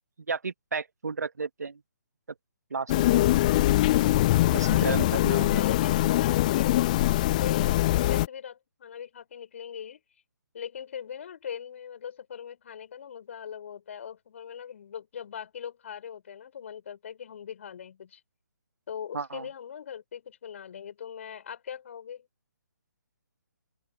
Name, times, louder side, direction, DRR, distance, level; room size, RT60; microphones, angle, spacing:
voice 1, 0.3-1.8 2.7-3.3 4.5-5.6 19.1-19.5, right 4 dB, 60° right, 1.9 m, -33 dB
sound 1, 2.9-8.3, left 16 dB, 25° left, 0.6 m, -23 dB
voice 2, 4.6-10.0 10.5-18.2 18.9-22.3, left 8 dB, 45° left, 5.9 m, -40 dB
open air
figure-of-eight pair, 140°, 10 cm